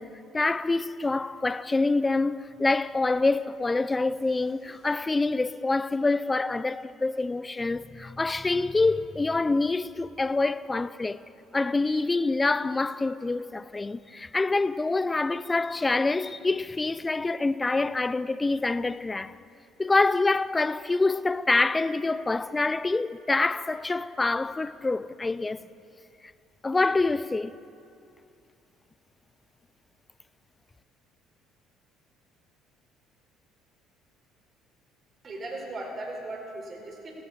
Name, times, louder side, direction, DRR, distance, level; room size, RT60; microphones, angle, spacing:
voice 1, 0.0-11.2 11.5-19.3 19.8-25.7 26.6-27.6, left 3 dB, 20° left, 0.5 m, -26 dB
voice 2, 35.2-37.1, right 2 dB, 45° right, 4.2 m, -37 dB
16.0 x 16.0 x 4.7 m
hypercardioid pair, 65°, 0 cm